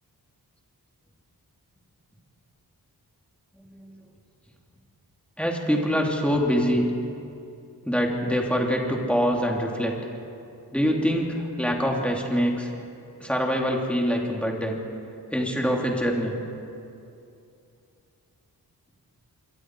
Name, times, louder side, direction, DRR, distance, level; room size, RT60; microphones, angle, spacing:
voice 1, 3.5-3.9 5.4-6.9 7.8-9.9 10.7-12.7 13.2-14.8 15.3-16.3, equal, 5° left, -1 dB, 3.1 m, -24 dB
26.5 x 23.5 x 4.8 m, 2.6 s
wide cardioid pair, 120°, 38 cm